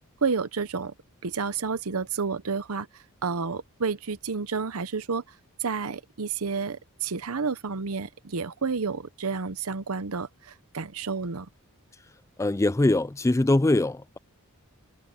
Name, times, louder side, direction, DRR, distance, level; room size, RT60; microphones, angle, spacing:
voice 1, 0.2-0.9 1.2-2.9 3.2-5.2 5.6-11.5, right 5 dB, 70° right, 0.8 m, -30 dB
voice 2, 12.4-14.2, left 2 dB, 15° left, 0.4 m, -22 dB
head